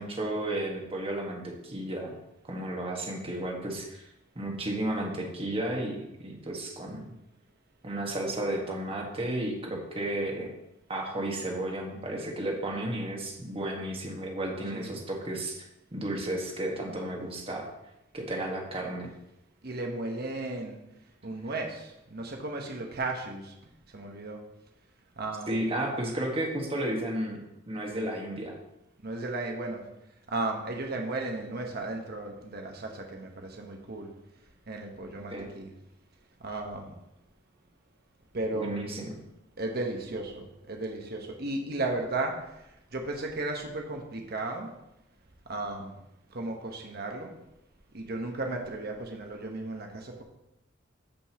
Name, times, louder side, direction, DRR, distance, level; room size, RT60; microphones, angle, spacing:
voice 1, 0.0-2.1 2.5-4.1 4.3-7.0 7.8-10.5 10.9-15.6 15.9-17.7 18.1-19.1 25.5-27.4 27.7-28.6 35.3-35.5 38.5-39.1, right 1 dB, 30° right, 0 dB, 1.5 m, -33 dB
voice 2, 19.6-20.8 21.2-23.5 23.9-24.4 25.2-25.6 29.0-29.8 30.3-34.1 34.7-35.7 36.4-36.9 38.3-38.8 39.6-44.7 45.5-46.0 46.3-47.4 47.9-50.2, right 2 dB, 55° right, 2 dB, 1.2 m, -35 dB
14.0 x 5.4 x 3.0 m, 0.87 s
head